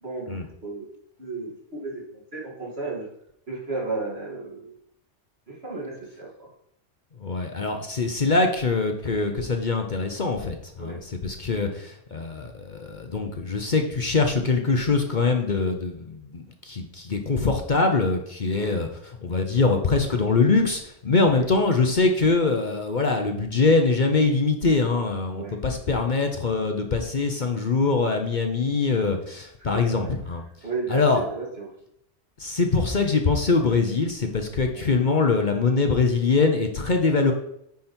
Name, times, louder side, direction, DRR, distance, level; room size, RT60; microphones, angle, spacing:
voice 1, 0.0-0.9 1.2-2.0 2.3-3.1 3.5-4.7 5.5-6.5 10.8-11.0 18.5-18.8 21.2-21.5 25.3-25.6 29.6-30.1 30.6-31.7 34.7-34.9, right 3 dB, 60° right, -4 dB, 2.8 m, -34 dB
voice 2, 7.2-18.9 19.2-30.4 30.9-31.2 32.4-37.3, left 4 dB, 45° left, 4 dB, 0.9 m, -23 dB
9.5 x 5.2 x 4.4 m, 0.75 s
omnidirectional pair, 1.2 m